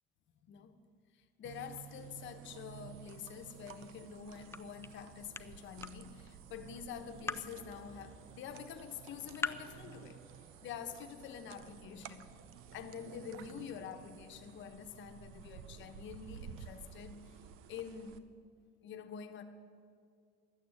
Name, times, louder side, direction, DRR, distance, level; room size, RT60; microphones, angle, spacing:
voice 1, 0.4-0.8 1.4-10.2 10.6-12.3 12.7-17.3 17.7-18.2 18.8-19.4, left 7 dB, 65° left, 8 dB, 1.1 m, -47 dB
sound 1, 1.4-18.2, right 9 dB, 80° right, 0.7 m, -53 dB
sound 2, 3.1-9.7, left 4 dB, 10° left, 0.4 m, -46 dB
sound 3, 6.5-13.5, equal, 35° right, 3.7 m, -68 dB
12.0 x 8.8 x 8.5 m, 2.3 s
cardioid pair, 115°, 21 cm